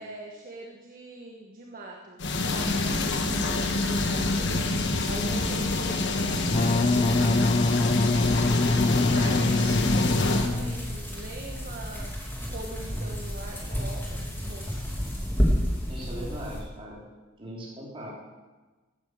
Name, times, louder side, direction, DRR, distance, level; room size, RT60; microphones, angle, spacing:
voice 1, 0.0-4.6 5.1-7.4 8.4-12.1 12.5-14.7, right 1 dB, 40° right, 0 dB, 1.3 m, -42 dB
sound 1, 2.2-10.5, left 2 dB, 55° left, 1.4 m, -26 dB
Wind instrument woodwind instrument, 6.4-11.0, left 2 dB, 30° left, 0.5 m, -24 dB
voice 2, 9.1-10.6 15.9-17.0 17.4-18.1, equal, 25° right, -4 dB, 3.7 m, -40 dB
sound 2, 9.7-16.6, equal, 10° left, 2.7 m, -31 dB
15.0 x 9.6 x 6.5 m, 1.2 s
head